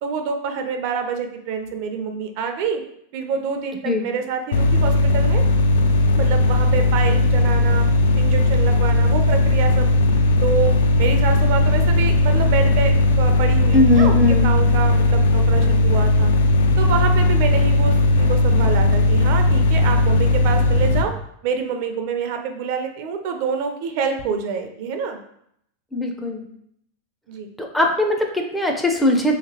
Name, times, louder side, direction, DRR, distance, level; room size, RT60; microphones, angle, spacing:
voice 1, 0.0-2.8 3.1-5.4 6.2-7.9 8.2-16.3 16.8-21.1 21.4-25.2 27.3-27.5, right 6 dB, 55° right, 6 dB, 0.4 m, -27 dB
sound 1, 4.5-21.0, left 2 dB, 85° left, 0.3 m, -17 dB
voice 2, 13.7-14.6 25.9-26.4 27.6-29.4, left 2 dB, 5° left, 2 dB, 0.4 m, -19 dB
3.0 x 2.9 x 2.8 m, 0.72 s
supercardioid pair, 135°, 0 cm